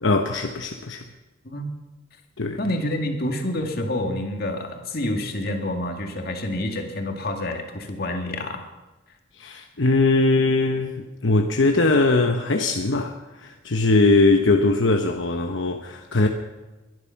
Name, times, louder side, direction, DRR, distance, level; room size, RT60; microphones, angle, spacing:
voice 1, 0.0-1.0 2.4-2.6 9.4-16.3, left 2 dB, 75° left, 4 dB, 1.0 m, -21 dB
voice 2, 2.6-8.7, left 1 dB, 50° left, 4 dB, 2.2 m, -28 dB
22.0 x 11.0 x 5.9 m, 1.1 s
head